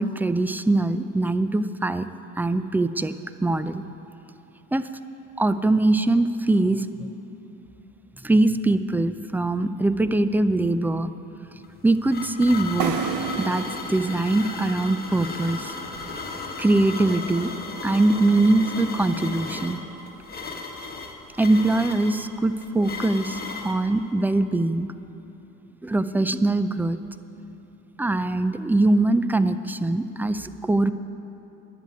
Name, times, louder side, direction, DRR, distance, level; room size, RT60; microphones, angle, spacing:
voice 1, 0.0-2.1 2.4-3.1 3.4-3.8 4.7-4.9 5.4-7.1 8.2-11.1 11.8-12.9 13.4-15.7 16.6-17.5 17.8-19.8 21.4-23.4 23.6-24.9 25.8-27.0 28.0-30.9, right 2 dB, 5° right, 12 dB, 0.4 m, -22 dB
sound 1, 11.6-23.8, left 4 dB, 25° left, 1.4 m, -35 dB
sound 2, 12.8-16.4, right 7 dB, 70° right, 1.0 m, -33 dB
11.5 x 7.9 x 9.4 m, 2.9 s
supercardioid pair, 85°, 37 cm